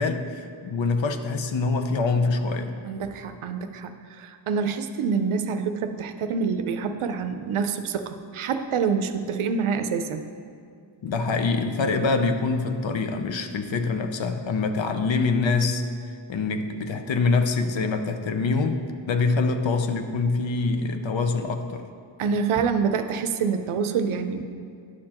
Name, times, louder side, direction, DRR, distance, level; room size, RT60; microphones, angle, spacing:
voice 1, 0.0-2.7 11.0-15.9 16.3-21.9, left 4 dB, 65° left, 7 dB, 0.7 m, -25 dB
voice 2, 2.8-10.2 22.2-24.4, right 6 dB, 85° right, 8 dB, 0.6 m, -26 dB
11.0 x 6.6 x 2.9 m, 2.4 s
wide cardioid pair, 80°, 48 cm